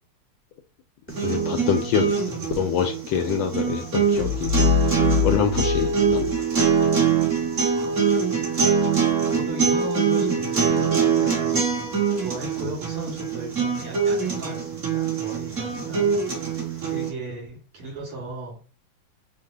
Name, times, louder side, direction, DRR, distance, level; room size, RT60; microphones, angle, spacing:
voice 1, 1.1-2.3 2.6-4.5 5.2-6.3, left 7 dB, 75° left, 6 dB, 1.1 m, -25 dB
sound 1, 1.1-17.1, right 6 dB, 40° right, 1.6 m, -23 dB
sound 2, 4.1-6.8, left 13 dB, 55° right, 1.6 m, -25 dB
voice 2, 7.7-8.4 9.3-16.1 16.8-18.7, right 2 dB, 75° right, -5 dB, 3.4 m, -36 dB
5.6 x 2.3 x 3.8 m, 0.35 s
omnidirectional pair, 2.4 m